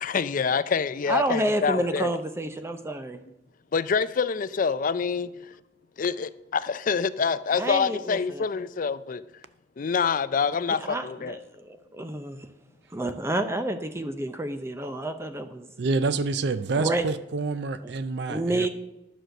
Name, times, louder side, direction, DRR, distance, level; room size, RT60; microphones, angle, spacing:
voice 1, 0.0-2.2 3.7-5.5 6.0-9.2 9.8-11.4, left 5 dB, 50° left, 0.4 m, -26 dB
voice 2, 1.1-3.2 7.5-8.4 10.9-12.5 12.9-15.7 16.8-17.0 18.3-18.7, right 1 dB, 15° right, 0.6 m, -29 dB
voice 3, 15.8-18.7, right 3 dB, 70° right, 0.5 m, -27 dB
10.5 x 6.2 x 6.5 m
head